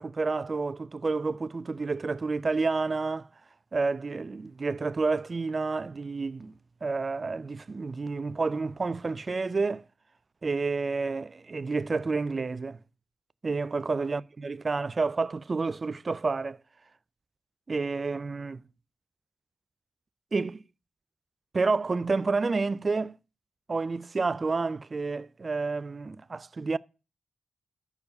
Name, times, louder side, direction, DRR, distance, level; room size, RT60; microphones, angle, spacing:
voice 1, 0.0-3.3 3.7-6.5 6.8-9.8 10.4-12.8 13.4-16.6 17.7-18.6 20.3-20.6 21.5-23.2 23.7-26.8, right 4 dB, 45° right, 0.3 m, -29 dB
6.6 x 4.8 x 6.6 m
supercardioid pair, 45°, 0 cm